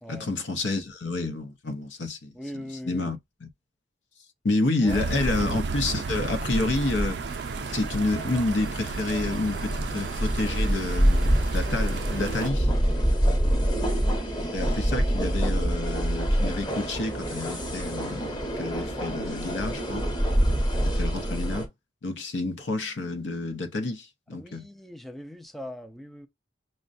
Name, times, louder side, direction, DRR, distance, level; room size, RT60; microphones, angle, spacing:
voice 1, 0.1-3.5 4.4-12.7 14.5-20.0 20.8-21.7 22.0-24.7, left 2 dB, 80° left, 0.7 m, -29 dB
voice 2, 2.3-3.1 4.8-5.0 24.3-26.3, equal, ahead, 0.4 m, -40 dB
sound 1, 4.9-12.5, right 4 dB, 65° right, 0.4 m, -33 dB
sound 2, 5.2-21.7, equal, 25° left, 0.9 m, -27 dB
6.2 x 2.2 x 2.5 m
head